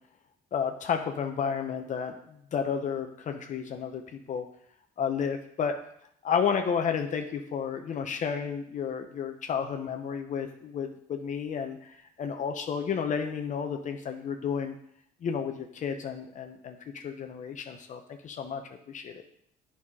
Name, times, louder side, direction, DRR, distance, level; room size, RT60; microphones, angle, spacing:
voice 1, 0.5-4.4 5.0-5.7 6.2-14.8 15.2-18.6 18.9-19.2, left 7 dB, 50° left, 5 dB, 0.9 m, -32 dB
8.5 x 5.7 x 4.8 m, 0.69 s
cardioid pair, 110°, 17 cm